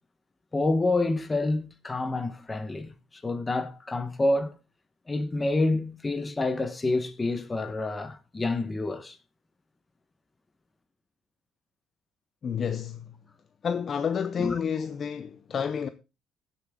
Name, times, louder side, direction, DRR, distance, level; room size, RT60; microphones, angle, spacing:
voice 1, 0.5-4.5 5.1-9.2 14.4-14.6, left 2 dB, 15° left, 1.1 m, -28 dB
voice 2, 12.4-13.1 13.6-15.9, left 7 dB, 30° left, 0.5 m, -30 dB
15.5 x 7.1 x 3.7 m
cardioid pair, 160°, 0 cm